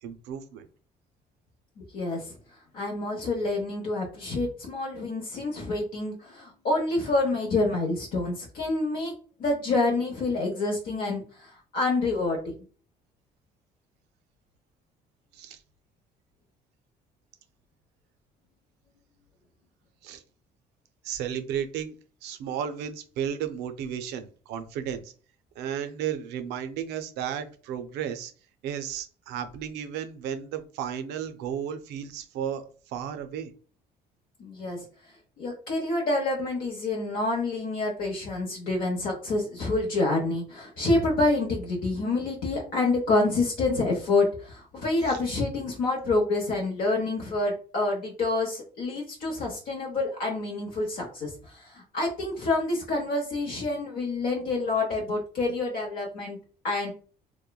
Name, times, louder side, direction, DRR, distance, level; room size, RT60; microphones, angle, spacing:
voice 1, 0.0-0.7 15.3-15.6 20.0-20.2 21.0-21.9 22.2-25.1 25.6-28.3 28.6-33.5, right 9 dB, 90° right, 9 dB, 0.4 m, -33 dB
voice 2, 1.8-2.4 2.7-9.1 9.4-12.5 34.4-34.8 35.4-56.4 56.6-56.9, left 2 dB, 60° left, -1 dB, 0.8 m, -27 dB
3.0 x 2.1 x 2.3 m, 0.39 s
cardioid pair, 110°, 17 cm